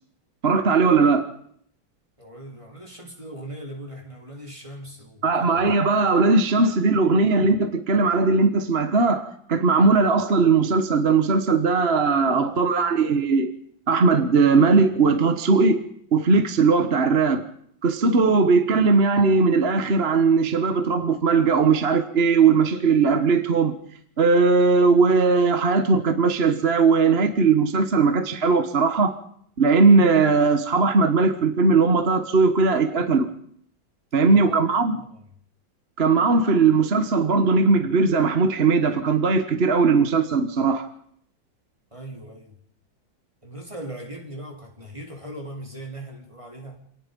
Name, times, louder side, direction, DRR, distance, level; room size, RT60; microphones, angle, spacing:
voice 1, 0.4-1.3 5.2-13.5 13.9-15.8 16.1-17.4 17.8-23.7 24.2-29.2 29.6-33.3 34.1-35.0 36.0-40.9, right 4 dB, 35° right, 1.4 m, -19 dB
voice 2, 2.2-5.6 12.3-13.2 34.2-35.2 41.9-42.5 43.4-46.8, right 1 dB, 15° right, 4.0 m, -40 dB
27.5 x 19.0 x 5.4 m
omnidirectional pair, 2.2 m